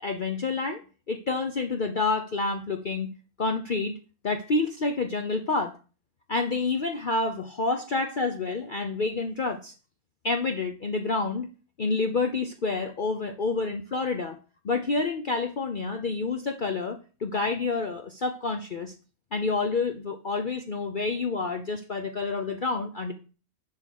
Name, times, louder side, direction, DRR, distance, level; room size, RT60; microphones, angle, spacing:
voice 1, 0.0-0.8 1.1-3.1 3.4-4.0 4.2-5.7 6.3-9.7 10.2-11.5 11.8-14.4 14.6-18.9 19.3-23.1, left 3 dB, 45° left, 5 dB, 0.7 m, -28 dB
11.0 x 3.8 x 6.4 m, 0.36 s
omnidirectional pair, 1.5 m